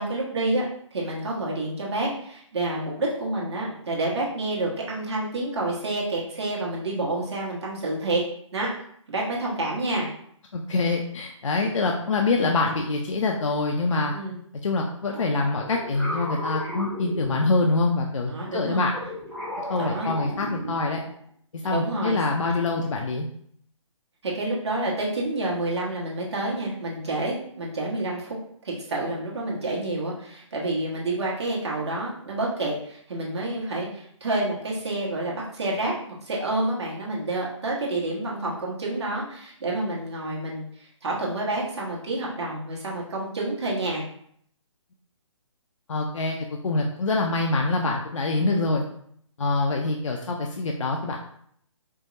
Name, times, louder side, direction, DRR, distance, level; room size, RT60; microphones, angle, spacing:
voice 1, 0.0-8.2 8.5-8.7 9.1-10.1 14.1-14.4 18.3-18.9 19.8-20.1 21.6-22.2 22.7-22.8 24.2-28.4 28.6-44.0 48.5-48.8, right 2 dB, 55° right, -4 dB, 1.0 m, -29 dB
voice 2, 10.5-14.1 14.6-18.9 19.7-21.0 21.6-23.3 45.9-46.4 46.6-48.8 49.4-51.2, left 3 dB, 70° left, 1 dB, 0.4 m, -25 dB
sound 1, 15.1-17.8 18.4-21.1, equal, ahead, 0.7 m, -35 dB
4.5 x 2.0 x 2.5 m, 0.66 s
figure-of-eight pair, 140°, 17 cm